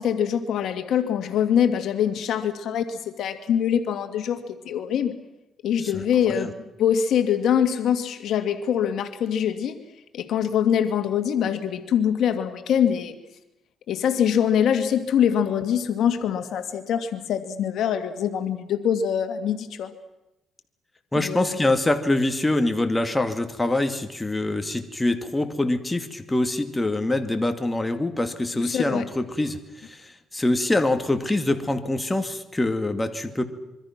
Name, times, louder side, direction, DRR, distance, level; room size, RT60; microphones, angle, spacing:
voice 1, 0.0-5.2 5.6-9.8 10.1-13.2 13.9-19.9 21.2-21.6 28.6-29.1, left 8 dB, 75° left, 8 dB, 2.1 m, -24 dB
voice 2, 21.1-33.4, left 2 dB, 15° left, 6 dB, 2.2 m, -25 dB
26.0 x 24.0 x 6.0 m, 0.93 s
cardioid pair, 90°, 0 cm